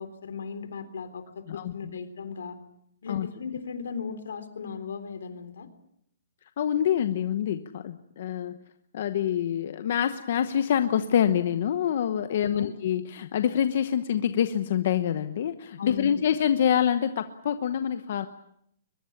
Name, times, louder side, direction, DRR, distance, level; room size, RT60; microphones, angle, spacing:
voice 1, 0.0-2.6 3.0-5.7 12.3-12.7 15.8-16.3, left 5 dB, 75° left, 10 dB, 3.7 m, -37 dB
voice 2, 6.6-8.6 8.9-18.3, left 9 dB, 40° left, 10 dB, 1.0 m, -26 dB
22.5 x 22.0 x 8.6 m, 0.72 s
hypercardioid pair, 180°, 0 cm